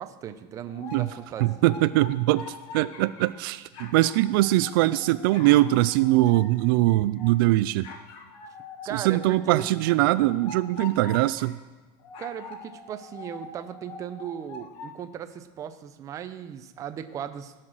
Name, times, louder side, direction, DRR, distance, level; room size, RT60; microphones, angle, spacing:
voice 1, 0.0-1.7 8.8-9.7 12.2-17.5, right 9 dB, 30° right, 10 dB, 0.7 m, -37 dB
sound 1, 0.7-3.4 3.7-7.4 7.8-11.6 12.0-14.9, left 4 dB, 45° left, 1.4 m, -44 dB
voice 2, 1.4-7.9 8.9-11.6, right 17 dB, 80° right, 15 dB, 0.4 m, -22 dB
17.0 x 5.8 x 6.3 m, 1.3 s
cardioid pair, 160°, 12 cm